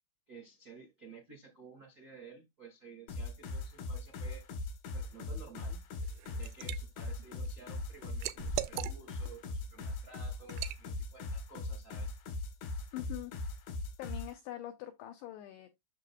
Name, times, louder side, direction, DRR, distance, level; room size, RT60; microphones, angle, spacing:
voice 1, 0.3-4.5 4.9-5.8 6.4-12.1, right 4 dB, 45° right, 1.2 m, -53 dB
sound 1, 3.1-14.3, left 2 dB, 65° left, 2.9 m, -40 dB
Liquid, 6.0-6.8 7.2-9.3 9.7-9.9 10.5-10.8, right 14 dB, 85° right, 2.8 m, -39 dB
voice 2, 12.9-13.3 14.0-15.7, left 13 dB, 85° left, 2.3 m, -43 dB
8.3 x 6.6 x 2.3 m
omnidirectional pair, 5.5 m